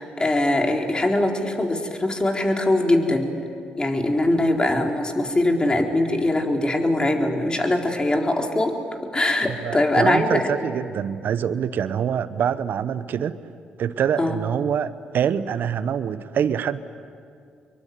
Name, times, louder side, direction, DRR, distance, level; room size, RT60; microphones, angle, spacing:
voice 1, 0.0-3.3 3.8-8.8 9.1-10.5 14.2-14.4, left 1 dB, 25° left, 2 dB, 4.1 m, -22 dB
voice 2, 9.5-13.4 13.8-16.8, right 8 dB, 60° right, 14 dB, 0.9 m, -25 dB
26.5 x 23.0 x 9.5 m, 2.3 s
hypercardioid pair, 50°, 4 cm